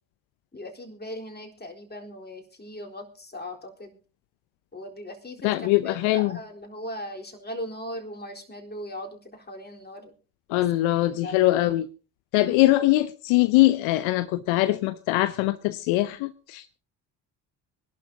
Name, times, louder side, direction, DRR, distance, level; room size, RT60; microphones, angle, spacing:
voice 1, 0.5-4.0 4.7-5.5 5.8-10.1 10.6-10.7 11.1-11.5 12.3-12.6, left 1 dB, 20° left, 4.0 m, -39 dB
voice 2, 5.4-6.4 10.5-11.9 12.3-16.8, left 17 dB, 65° left, 0.7 m, -22 dB
24.5 x 11.5 x 2.8 m
hypercardioid pair, 50°, 50 cm